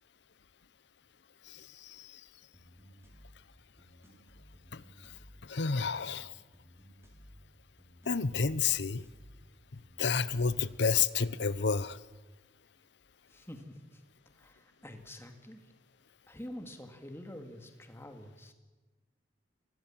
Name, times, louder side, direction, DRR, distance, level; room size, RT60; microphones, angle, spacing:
voice 1, 1.5-2.1 4.7-4.8 5.5-6.3 8.1-9.0 10.0-12.0, left 5 dB, 60° left, 17 dB, 0.8 m, -30 dB
sound 1, 2.5-10.5, equal, 15° right, 5.1 m, -57 dB
voice 2, 13.3-14.0 14.4-15.6 16.3-18.5, left 1 dB, 15° left, 5 dB, 2.3 m, -47 dB
27.5 x 20.0 x 7.5 m, 1.3 s
head